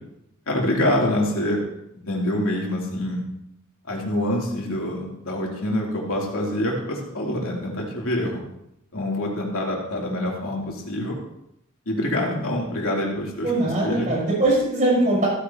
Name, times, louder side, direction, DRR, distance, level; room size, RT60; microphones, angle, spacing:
voice 1, 0.5-1.6 2.1-3.2 3.8-8.4 8.9-11.2 11.9-14.1, left 1 dB, 80° left, -2 dB, 3.1 m, -26 dB
voice 2, 13.4-15.3, right 1 dB, 35° right, -4 dB, 4.9 m, -21 dB
16.0 x 9.9 x 2.9 m, 0.79 s
head